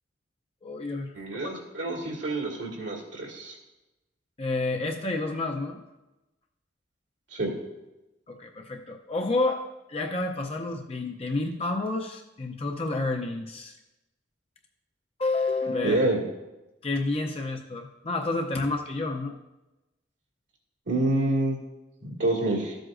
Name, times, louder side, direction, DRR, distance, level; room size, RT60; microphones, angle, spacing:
voice 1, 0.6-1.4 1.9-2.0 4.4-5.8 8.3-9.6 9.9-13.7 15.2-16.0 16.8-19.3, left 2 dB, 30° left, 3 dB, 0.5 m, -30 dB
voice 2, 1.1-3.5 7.3-7.5 15.8-16.2 20.9-21.6 22.0-22.8, right 2 dB, 75° right, -1 dB, 2.1 m, -27 dB
13.5 x 7.7 x 2.5 m, 1.0 s
head